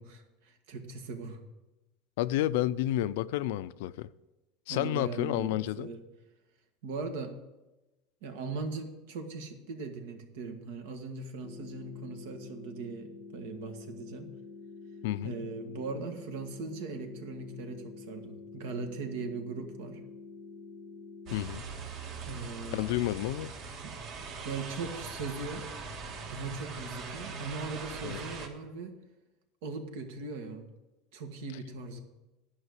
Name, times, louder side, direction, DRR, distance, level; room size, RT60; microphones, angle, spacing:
voice 1, 0.0-1.4 4.7-6.0 6.8-7.3 8.2-14.3 15.2-20.0 22.2-22.9 23.8-23.9 24.4-25.7 26.3-29.0 29.6-30.7 31.1-32.0, right 4 dB, 80° right, 1.7 m, -39 dB
voice 2, 2.2-4.1 4.7-5.9 15.0-15.3 21.3-21.6 22.7-23.5 28.0-28.2, left 14 dB, 75° left, 0.4 m, -30 dB
sound 1, 11.4-21.4, left 4 dB, 20° left, 0.6 m, -48 dB
sound 2, 21.3-28.5, right 4 dB, 45° right, 1.6 m, -41 dB
11.0 x 5.6 x 8.1 m
supercardioid pair, 150°, 0 cm